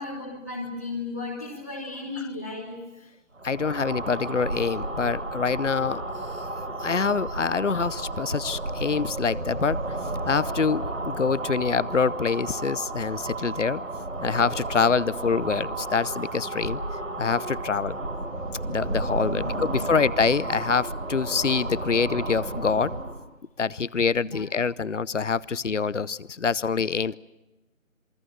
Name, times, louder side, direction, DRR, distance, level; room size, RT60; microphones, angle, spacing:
voice 1, 0.0-3.1 19.2-19.7 24.2-24.4, left 3 dB, 10° left, -4 dB, 1.3 m, -35 dB
voice 2, 3.4-6.0 6.8-9.8 10.3-13.8 14.2-16.8 17.2-18.0 18.7-22.9 23.6-27.2, left 5 dB, 60° left, 20 dB, 0.8 m, -25 dB
sound 1, 3.4-23.2, right 2 dB, 65° right, 4.5 m, -32 dB
27.5 x 23.5 x 7.2 m, 1.1 s
figure-of-eight pair, 165°, 41 cm